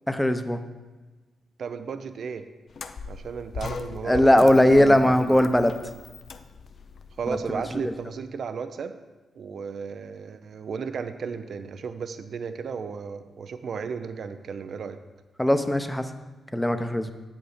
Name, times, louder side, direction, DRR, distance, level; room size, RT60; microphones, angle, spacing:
voice 1, 0.1-0.6 4.1-5.7 15.4-16.1 16.5-17.1, left 1 dB, 10° left, 8 dB, 0.6 m, -19 dB
voice 2, 1.6-2.4 3.1-5.4 7.2-9.0 9.4-15.0, right 5 dB, 70° right, 10 dB, 0.4 m, -34 dB
sound 1, 2.7-8.0, left 5 dB, 60° left, 0.5 m, -38 dB
7.7 x 5.3 x 5.0 m, 1.2 s
cardioid pair, 60°, 0 cm